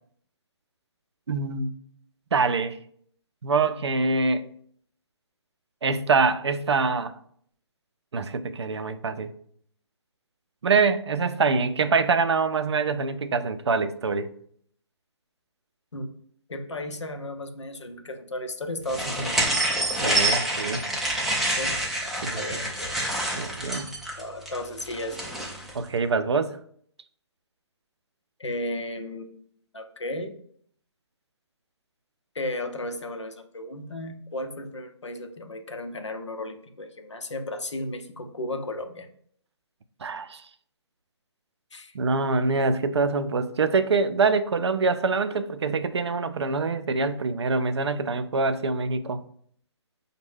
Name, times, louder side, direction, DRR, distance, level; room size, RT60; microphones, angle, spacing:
voice 1, 1.3-1.7 2.3-2.8 3.4-4.5 5.8-7.2 8.1-9.3 10.6-14.3 19.2-19.3 20.0-20.8 22.2-22.4 23.3-23.9 25.7-26.6 40.0-40.4 41.9-49.2, right 4 dB, 65° right, 11 dB, 0.4 m, -25 dB
voice 2, 16.5-19.4 21.5-23.5 24.2-25.3 28.4-29.5 29.7-30.3 32.3-39.1 41.7-41.9, left 1 dB, 75° left, 6 dB, 0.6 m, -35 dB
sound 1, 18.9-25.7, right 1 dB, ahead, 0.3 m, -27 dB
5.2 x 2.2 x 3.3 m, 0.62 s
figure-of-eight pair, 135°, 15 cm